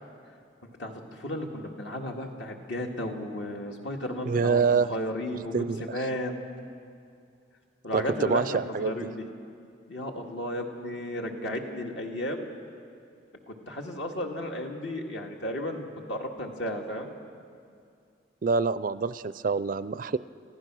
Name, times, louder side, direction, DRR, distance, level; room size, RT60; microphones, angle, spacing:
voice 1, 0.8-5.5 5.8-6.4 7.8-9.2 9.9-12.5 13.5-17.1, left 1 dB, 65° left, 2 dB, 2.0 m, -34 dB
voice 2, 4.3-4.9 5.5-5.9 7.9-8.9 18.4-20.2, right 5 dB, 45° right, 16 dB, 0.4 m, -26 dB
27.0 x 15.5 x 6.2 m, 2.3 s
head